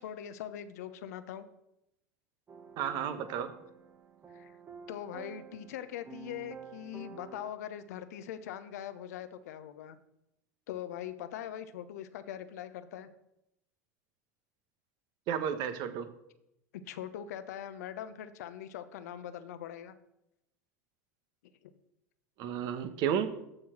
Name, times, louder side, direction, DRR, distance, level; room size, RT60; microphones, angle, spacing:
voice 1, 0.0-1.4 4.3-4.6 4.9-10.0 10.7-13.1 16.7-19.9 21.6-21.7, left 10 dB, 65° left, 11 dB, 0.9 m, -42 dB
sound 1, 2.5-7.5, right 6 dB, 25° right, 1.2 m, -50 dB
voice 2, 2.8-3.5 15.3-16.1 22.4-23.4, right 8 dB, 50° right, 11 dB, 1.1 m, -32 dB
14.0 x 4.7 x 6.2 m, 0.84 s
figure-of-eight pair, 75°, 9 cm